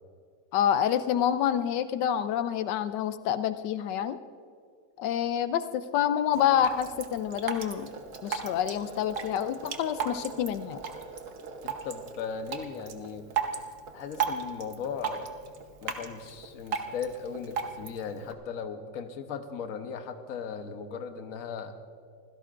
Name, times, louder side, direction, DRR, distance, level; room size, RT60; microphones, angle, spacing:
voice 1, 0.5-4.2 5.0-7.9 8.2-10.8, left 9 dB, 85° left, 12 dB, 1.2 m, -27 dB
Drip, 6.3-18.3, right 6 dB, 50° right, 1.3 m, -37 dB
voice 2, 11.6-13.3 13.9-15.4 15.8-21.7, left 6 dB, 55° left, 7 dB, 1.3 m, -37 dB
25.5 x 16.0 x 2.5 m, 2.3 s
omnidirectional pair, 1.8 m